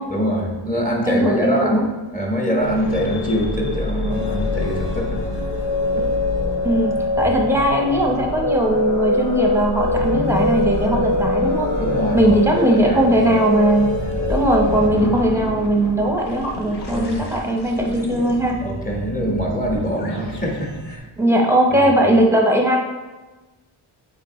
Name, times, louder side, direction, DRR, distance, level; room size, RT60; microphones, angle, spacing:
voice 1, 0.1-5.2 6.0-6.1 11.8-13.2 16.9-17.2 18.6-21.1 21.7-22.1, equal, 15° left, -1 dB, 1.3 m, -24 dB
voice 2, 1.1-1.8 6.6-11.7 12.1-13.9 14.3-18.6 21.2-22.8, right 1 dB, 5° right, 0 dB, 0.8 m, -19 dB
sound 1, 2.6-21.0, left 2 dB, 55° left, 1.0 m, -29 dB
sound 2, 4.1-14.9, left 2 dB, 85° left, 1.0 m, -23 dB
8.4 x 3.7 x 3.1 m, 1.2 s
wide cardioid pair, 100°, 48 cm